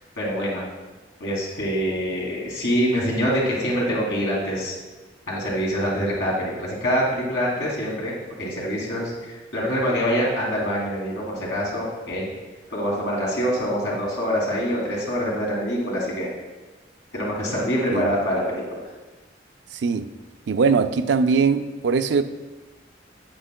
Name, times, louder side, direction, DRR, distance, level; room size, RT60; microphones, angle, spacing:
voice 1, 0.2-0.6 1.2-4.8 5.3-8.1 8.4-12.3 12.7-16.3 17.1-18.8, equal, 90° left, -4 dB, 2.6 m, -25 dB
voice 2, 19.7-20.1 20.5-22.2, right 5 dB, 75° right, 10 dB, 0.4 m, -21 dB
8.7 x 8.6 x 2.2 m, 1.2 s
head